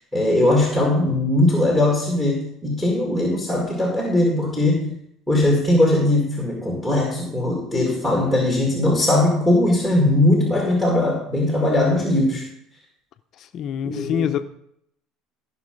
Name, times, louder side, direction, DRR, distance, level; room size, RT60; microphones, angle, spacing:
voice 1, 0.1-4.9 5.3-12.4 13.8-14.3, left 1 dB, 5° right, 0 dB, 2.3 m, -20 dB
voice 2, 13.4-14.4, left 9 dB, 50° left, 10 dB, 0.6 m, -25 dB
15.0 x 5.8 x 5.2 m, 0.73 s
supercardioid pair, 115°, 0 cm